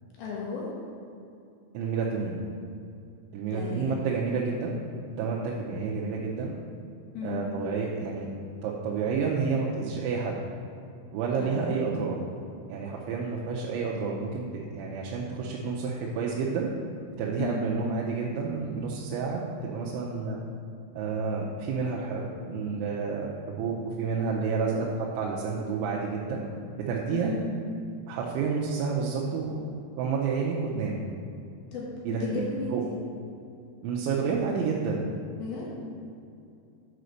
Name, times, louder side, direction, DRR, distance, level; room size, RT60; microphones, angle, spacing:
voice 1, 0.2-0.7 3.5-4.0 7.1-7.4 11.4-11.8 17.4-17.7 27.1-27.5 31.7-33.0 35.4-35.8, left 4 dB, 65° left, -4 dB, 2.6 m, -34 dB
voice 2, 1.7-2.4 3.3-6.5 7.2-8.3 8.6-10.4 11.1-12.2 12.7-16.7 17.2-20.4 21.0-26.4 26.8-27.3 28.1-29.7 30.0-31.0 32.1-32.4 32.7-32.8 33.8-35.1, right 5 dB, 85° right, -3 dB, 3.1 m, -30 dB
8.0 x 5.0 x 6.4 m, 2.6 s
omnidirectional pair, 5.3 m